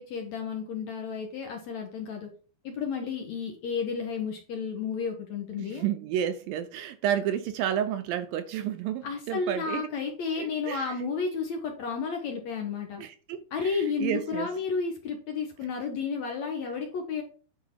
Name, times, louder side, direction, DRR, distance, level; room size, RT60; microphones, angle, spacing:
voice 1, 0.0-2.3 2.6-5.9 9.0-13.0 13.5-17.2, left 5 dB, 65° left, 1.9 m, -32 dB
voice 2, 5.5-9.8 10.4-11.0 13.0-14.5, right 10 dB, 80° right, 2.2 m, -31 dB
10.5 x 4.8 x 4.5 m
omnidirectional pair, 4.5 m